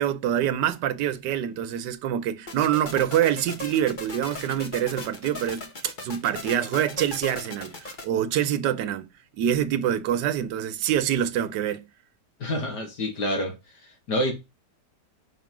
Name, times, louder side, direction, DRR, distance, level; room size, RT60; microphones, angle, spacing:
voice 1, 0.0-9.1 9.4-11.9, right 10 dB, 85° right, 1.3 m, -26 dB
sound 1, 2.5-8.0, left 2 dB, 30° left, 1.2 m, -37 dB
voice 2, 12.4-13.6 13.8-14.3, equal, 75° left, 2.7 m, -27 dB
5.9 x 3.7 x 5.9 m
omnidirectional pair, 1.8 m